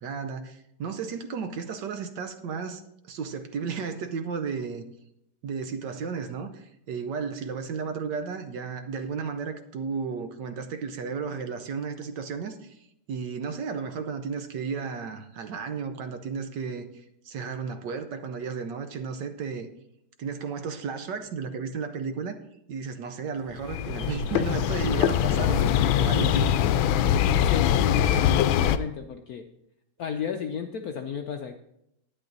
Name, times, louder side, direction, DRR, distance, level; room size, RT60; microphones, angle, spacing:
voice 1, 0.0-2.8 3.1-4.9 5.4-19.7 20.2-22.4 22.7-26.5, right 5 dB, 65° right, 9 dB, 1.3 m, -33 dB
sound 1, 23.6-28.8, left 10 dB, 85° left, 1.4 m, -23 dB
voice 2, 27.5-29.5 30.0-31.6, left 7 dB, 70° left, 5 dB, 0.9 m, -33 dB
11.5 x 9.4 x 3.9 m, 0.79 s
omnidirectional pair, 2.2 m